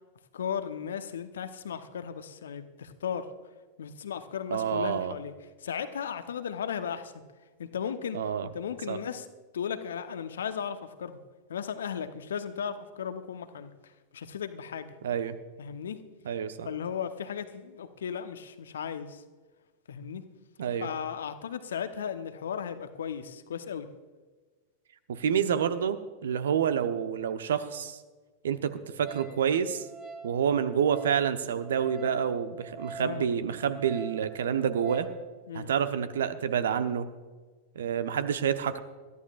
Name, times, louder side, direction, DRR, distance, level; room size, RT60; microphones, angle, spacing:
voice 1, 0.3-3.3 3.8-5.3 5.6-7.1 7.6-8.2 8.5-9.3 9.5-11.2 11.5-14.9 15.6-16.0 16.6-19.2 19.9-20.3 20.8-23.9 33.0-33.3 35.5-35.7, left 8 dB, 65° left, 10 dB, 1.0 m, -36 dB
voice 2, 4.5-5.1 8.1-8.5 8.9-9.0 15.0-15.4 16.2-16.7 20.6-20.9 25.1-28.0 28.4-29.9 30.2-35.1 35.5-37.1 37.7-38.8, right 8 dB, 65° right, 11 dB, 0.9 m, -28 dB
Wind instrument woodwind instrument, 29.0-35.2, right 5 dB, 25° right, 2.0 m, -45 dB
22.5 x 14.0 x 2.5 m, 1.3 s
figure-of-eight pair, 90°, 0 cm